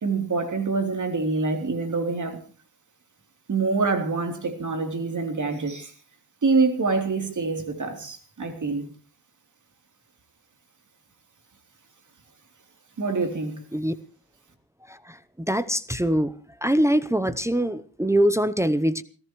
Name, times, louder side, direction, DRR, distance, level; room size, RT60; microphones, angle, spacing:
voice 1, 0.0-2.4 3.5-5.9 6.4-8.9 13.0-13.6, right 4 dB, 55° right, 6 dB, 3.4 m, -25 dB
voice 2, 15.5-16.3 16.6-19.0, equal, 10° right, 11 dB, 0.7 m, -23 dB
29.0 x 14.0 x 3.1 m, 0.37 s
wide cardioid pair, 140°, 37 cm